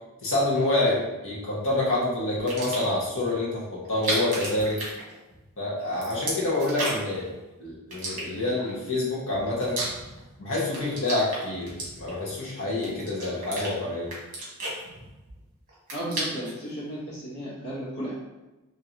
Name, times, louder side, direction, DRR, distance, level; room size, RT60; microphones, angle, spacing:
voice 1, 0.2-4.8 5.6-7.3 7.6-9.8 10.4-14.1, left 2 dB, 65° left, -5 dB, 1.2 m, -27 dB
sound 1, 2.3-3.0 3.8-5.5 5.8-7.2 7.9-8.7 9.2-10.3 10.6-12.3 12.8-13.7 14.1-15.4 15.7-16.6, right 2 dB, 40° right, 1.4 m, -33 dB
voice 2, 15.9-18.1, right 1 dB, 90° left, -12 dB, 1.5 m, -34 dB
3.9 x 2.9 x 2.9 m, 1.1 s
head